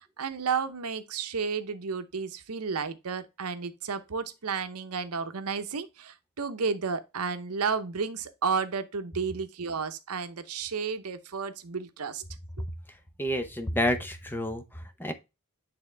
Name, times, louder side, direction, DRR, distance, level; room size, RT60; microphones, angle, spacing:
voice 1, 0.0-12.2, right 5 dB, 75° right, 0.8 m, -32 dB
voice 2, 13.2-15.1, left 1 dB, 10° left, 0.7 m, -29 dB
8.8 x 3.5 x 3.3 m
head